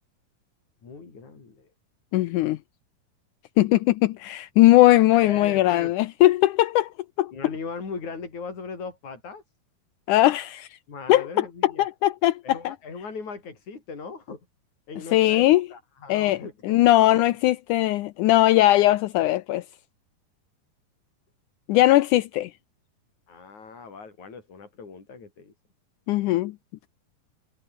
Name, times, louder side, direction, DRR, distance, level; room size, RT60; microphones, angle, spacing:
voice 1, 0.8-1.7 5.1-5.9 7.3-9.4 10.9-11.8 12.4-14.4 14.9-15.5 15.7-17.2 23.3-25.5, left 5 dB, 50° left, 6.5 m, -39 dB
voice 2, 2.1-2.6 3.6-6.9 7.2-7.3 10.1-10.7 11.1-12.8 15.1-15.7 16.1-19.6 21.7-22.5 26.1-26.5, left 16 dB, 90° left, 1.8 m, -20 dB
omnidirectional pair, 4.4 m